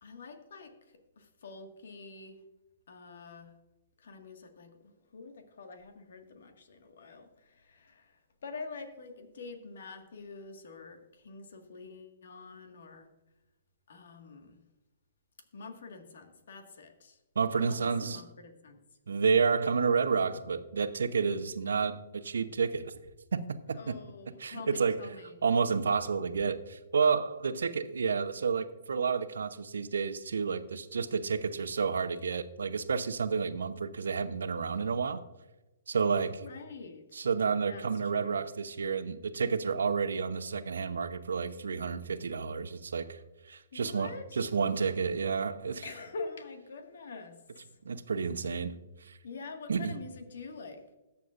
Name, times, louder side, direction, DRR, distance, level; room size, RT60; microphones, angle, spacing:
voice 1, 0.0-2.4 2.9-3.5 4.0-13.1 13.9-14.6 15.5-17.2 17.6-18.8 23.7-25.4 36.4-37.3 37.6-38.4 43.7-44.5 45.8-47.4 49.2-50.8, left 4 dB, 70° left, 1.8 m, -46 dB
voice 2, 17.4-18.2 19.1-22.9 23.3-23.9 24.4-25.0 25.4-35.2 35.9-36.5 37.1-43.2 43.5-45.8 47.8-48.7 49.1-49.2 49.7-50.0, right 5 dB, 80° right, 0.8 m, -30 dB
21.0 x 7.1 x 2.5 m
hypercardioid pair, 130°, 0 cm